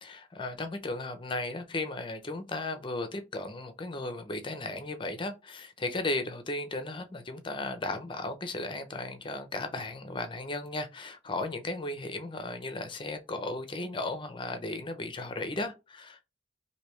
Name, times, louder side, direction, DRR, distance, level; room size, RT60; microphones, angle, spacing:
voice 1, 0.0-16.2, left 2 dB, 30° left, 0.6 m, -35 dB
3.2 x 2.7 x 3.1 m
head